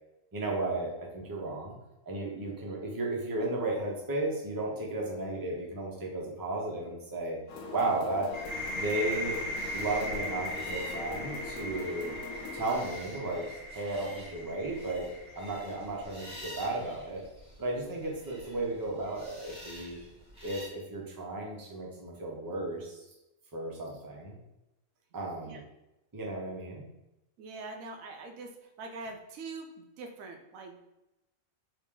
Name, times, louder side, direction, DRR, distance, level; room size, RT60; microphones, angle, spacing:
voice 1, 0.3-1.8 2.1-7.4 7.7-8.3 8.7-9.4 9.7-12.1 12.5-13.5 13.7-17.2 17.6-20.0 20.4-23.0 23.5-24.4 25.1-25.6 26.1-26.9, right 2 dB, 25° right, -2 dB, 0.5 m, -34 dB
sound 1, 7.5-12.8, left 4 dB, 90° left, 1.1 m, -42 dB
sound 2, 8.3-15.9, equal, 50° left, 1.0 m, -38 dB
sound 3, 8.3-20.7, equal, 5° right, 1.0 m, -50 dB
voice 2, 27.4-30.9, right 3 dB, 80° right, 4 dB, 1.0 m, -43 dB
3.2 x 2.8 x 3.6 m, 0.93 s
omnidirectional pair, 1.4 m